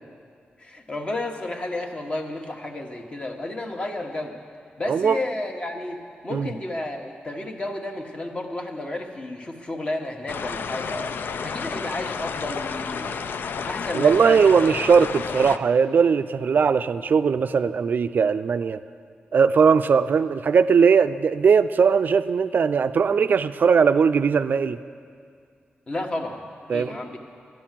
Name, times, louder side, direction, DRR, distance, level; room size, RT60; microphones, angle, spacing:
voice 1, 0.6-4.4 4.8-11.1 11.4-13.3 13.6-14.4 14.8-14.9 25.9-26.4 26.7-27.2, left 2 dB, 30° left, 3 dB, 1.2 m, -32 dB
voice 2, 4.9-5.2 6.3-6.5 13.9-18.8 19.3-24.8 26.7-27.0, right 6 dB, 60° right, 12 dB, 0.4 m, -19 dB
sound 1, 10.3-15.6, left 6 dB, 70° left, 0.4 m, -31 dB
11.5 x 10.5 x 7.4 m, 2.2 s
wide cardioid pair, 110°, 4 cm